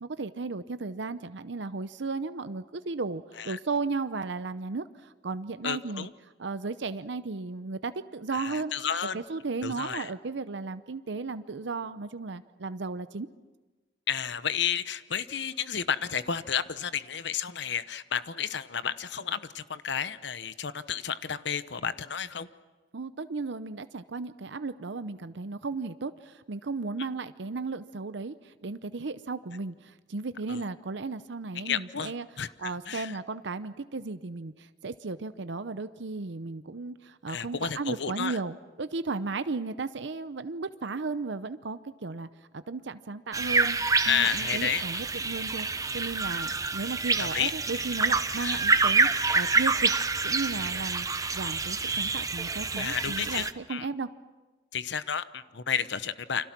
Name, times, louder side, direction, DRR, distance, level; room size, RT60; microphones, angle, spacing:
voice 1, 0.0-6.1 6.4-8.7 9.1-13.3 22.9-32.3 32.6-42.3 42.5-45.7 45.9-49.9 50.2-51.1 51.3-54.1, right 3 dB, 70° right, 12 dB, 0.7 m, -35 dB
voice 2, 5.6-6.1 8.3-9.2 9.6-10.1 14.1-22.5 30.5-30.6 31.6-32.1 32.4-33.2 37.3-38.4 44.0-45.0 47.2-47.5 48.4-48.6 52.8-53.9 54.7-56.5, left 7 dB, 70° left, 13 dB, 1.0 m, -31 dB
sound 1, 43.3-53.5, right 4 dB, 20° right, 0.9 m, -27 dB
29.5 x 26.0 x 6.1 m, 1.2 s
head